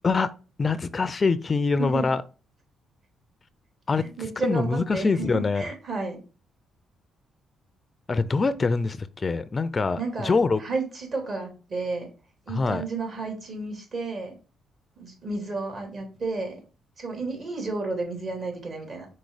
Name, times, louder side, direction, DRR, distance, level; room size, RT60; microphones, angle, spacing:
voice 1, 0.6-2.2 3.9-4.1 4.4-5.7 8.1-10.6 12.5-12.8, left 4 dB, 30° left, 0.4 m, -24 dB
voice 2, 4.0-6.2 10.0-12.1 12.5-14.3 15.0-16.6 17.0-19.1, right 3 dB, 50° right, 2.9 m, -32 dB
5.3 x 4.1 x 4.8 m
cardioid pair, 90°, 0 cm